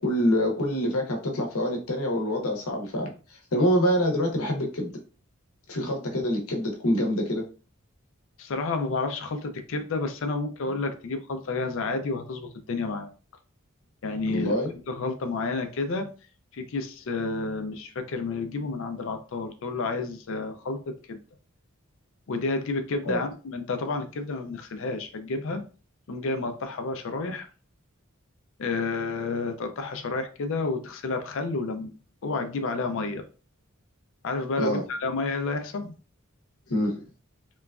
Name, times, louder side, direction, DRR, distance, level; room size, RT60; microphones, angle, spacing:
voice 1, 0.0-3.1 3.5-4.9 5.7-7.4 14.3-14.7 23.0-23.2 34.6-34.8 36.7-37.0, equal, 85° left, 1 dB, 0.8 m, -25 dB
voice 2, 8.4-13.1 14.0-14.6 14.9-16.1 16.5-21.2 22.3-25.6 26.1-27.5 28.6-31.9 32.2-33.2 34.2-35.9, left 3 dB, 60° left, 7 dB, 0.4 m, -30 dB
3.0 x 2.3 x 2.3 m, 0.36 s
head